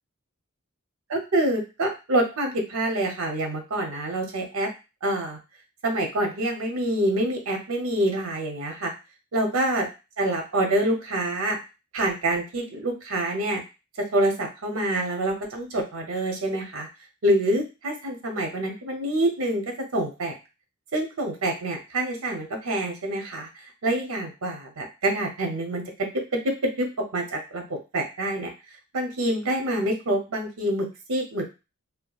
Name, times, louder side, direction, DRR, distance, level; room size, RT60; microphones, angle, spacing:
voice 1, 1.1-4.7 5.0-5.4 5.8-8.9 9.3-9.9 10.2-11.6 11.9-13.6 14.1-16.9 17.2-20.3 20.9-28.5 28.9-31.5, right 1 dB, 75° right, 3 dB, 0.6 m, -26 dB
2.7 x 2.2 x 2.3 m, 0.28 s
head